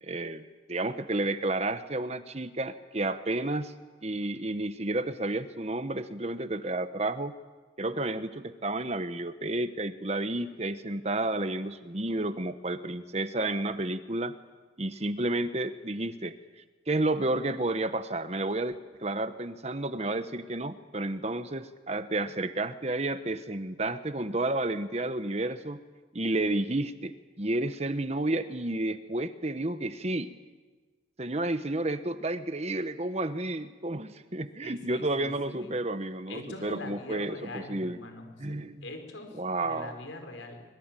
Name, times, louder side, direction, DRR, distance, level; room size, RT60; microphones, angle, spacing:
voice 1, 0.0-3.7 4.0-7.4 7.8-14.3 14.8-16.3 16.9-25.8 26.1-30.3 31.2-38.0 38.4-38.8 39.4-40.0, right 2 dB, 35° right, 11 dB, 1.1 m, -31 dB
voice 2, 34.6-35.7 36.3-40.6, left 2 dB, 85° left, 5 dB, 5.2 m, -43 dB
25.5 x 21.5 x 9.2 m, 1.3 s
head